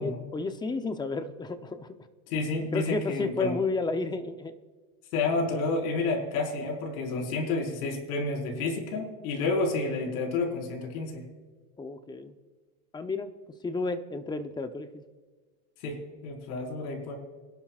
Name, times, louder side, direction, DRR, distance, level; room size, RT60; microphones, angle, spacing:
voice 1, 0.0-1.9 2.7-4.5 11.8-12.3 12.9-13.3 13.6-15.0, left 3 dB, 10° left, 9 dB, 0.7 m, -32 dB
voice 2, 2.3-3.5 5.1-11.2 15.8-17.1, left 3 dB, 75° left, 1 dB, 5.0 m, -30 dB
25.5 x 12.0 x 2.5 m, 1.4 s
supercardioid pair, 130°, 44 cm